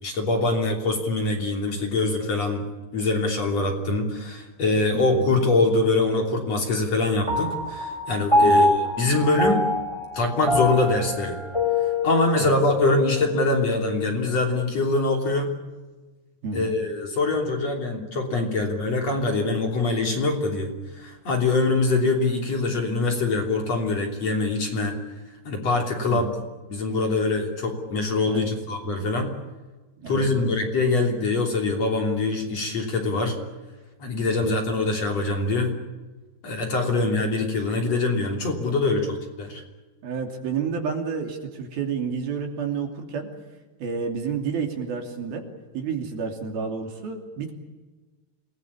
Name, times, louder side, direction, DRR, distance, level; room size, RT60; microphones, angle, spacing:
voice 1, 0.0-2.7 2.9-9.7 10.1-11.4 12.0-15.5 16.5-25.0 25.4-26.3 26.7-29.3 30.1-33.4 34.0-35.7 36.4-39.6, left 2 dB, 40° left, 2 dB, 4.0 m, -24 dB
voice 2, 4.9-5.3 8.4-8.7 12.4-12.5 16.4-16.7 26.1-26.3 28.2-28.5 30.0-30.5 34.3-34.6 40.0-43.3 43.8-45.4 45.7-47.5, right 5 dB, 60° right, 3 dB, 4.5 m, -30 dB
Piano, 7.3-14.0, left 2 dB, 5° left, 3.5 m, -25 dB
28.0 x 20.0 x 8.6 m, 1.2 s
omnidirectional pair, 4.9 m